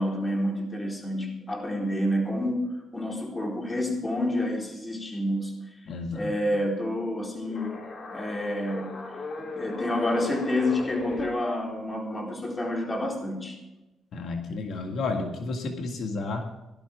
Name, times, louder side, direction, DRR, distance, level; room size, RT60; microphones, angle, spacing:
voice 1, 0.0-2.7 2.9-5.5 6.1-7.8 8.1-9.0 9.4-13.6, left 1 dB, 25° left, 0 dB, 4.1 m, -29 dB
voice 2, 5.9-6.3 14.1-16.5, left 3 dB, 65° left, 3 dB, 1.9 m, -31 dB
sound 1, 7.4-11.3, left 3 dB, 45° left, 3.3 m, -36 dB
18.0 x 12.0 x 3.6 m, 1.0 s
cardioid pair, 90°, 0 cm